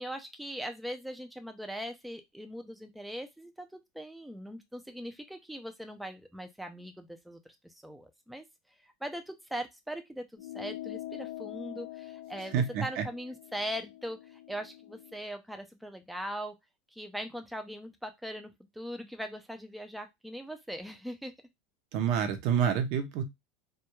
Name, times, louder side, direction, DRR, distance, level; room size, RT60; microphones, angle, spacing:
voice 1, 0.0-8.4 9.0-16.6 16.9-21.3, equal, ahead, 6 dB, 0.3 m, -40 dB
sound 1, 10.4-15.2, left 14 dB, 85° left, 0.3 m, -44 dB
voice 2, 12.5-13.0 21.9-23.2, right 8 dB, 60° right, 7 dB, 0.5 m, -28 dB
2.2 x 2.1 x 2.9 m, 0.18 s
supercardioid pair, 125°, 0 cm